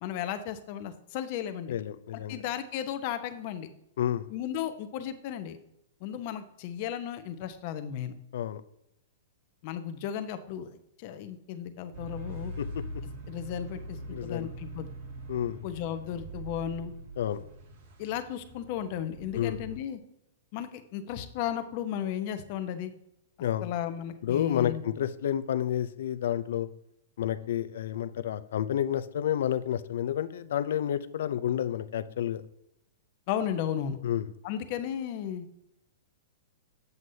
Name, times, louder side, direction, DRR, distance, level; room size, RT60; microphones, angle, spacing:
voice 1, 0.0-1.8 2.1-3.7 4.3-5.6 6.0-8.1 9.6-12.5 13.3-14.9 15.6-16.9 18.0-20.0 20.5-22.9 23.6-24.8 33.3-34.0 34.4-35.5, left 10 dB, 50° left, 9 dB, 0.9 m, -35 dB
voice 2, 1.7-2.4 4.0-4.3 8.3-8.6 12.6-12.7 14.1-14.5 15.3-15.6 17.2-17.4 19.3-19.7 23.4-23.6 24.2-26.7 27.2-32.4 34.0-34.3, left 10 dB, 70° left, 13 dB, 0.5 m, -30 dB
sound 1, 11.9-19.8, right 1 dB, 60° right, 1.8 m, -42 dB
8.0 x 7.4 x 2.8 m, 0.80 s
hypercardioid pair, 120°, 0 cm